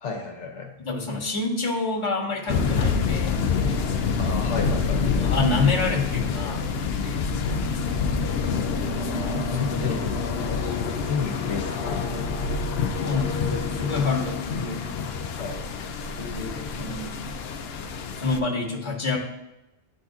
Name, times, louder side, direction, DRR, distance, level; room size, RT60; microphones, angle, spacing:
voice 1, 0.0-0.7 4.2-5.2 8.4-12.4 15.3-15.7, left 5 dB, 85° left, 2 dB, 1.2 m, -33 dB
voice 2, 0.8-3.4 5.2-7.2 9.3-10.0 10.6-10.8 13.0-14.9 16.2-17.2 18.1-19.2, left 3 dB, 25° left, -4 dB, 1.3 m, -28 dB
sound 1, 2.5-18.4, left 5 dB, 65° left, 0.8 m, -27 dB
11.0 x 4.0 x 2.3 m, 0.93 s
omnidirectional pair, 1.2 m